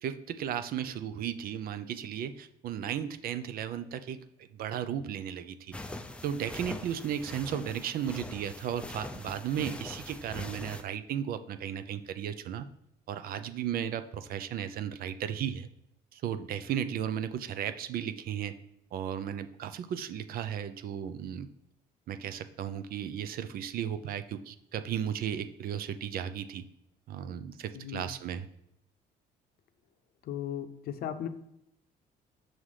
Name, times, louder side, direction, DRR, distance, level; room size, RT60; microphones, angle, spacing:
voice 1, 0.0-5.8 6.2-12.7 13.1-15.7 16.1-18.5 18.9-21.5 22.1-26.6 27.1-28.5, right 9 dB, 60° right, 11 dB, 0.5 m, -35 dB
sound 1, 5.7-10.8, left 1 dB, 5° left, 0.4 m, -42 dB
voice 2, 27.7-28.1 30.2-31.3, left 9 dB, 60° left, 9 dB, 0.6 m, -37 dB
6.2 x 3.3 x 5.5 m, 0.80 s
cardioid pair, 110°, 17 cm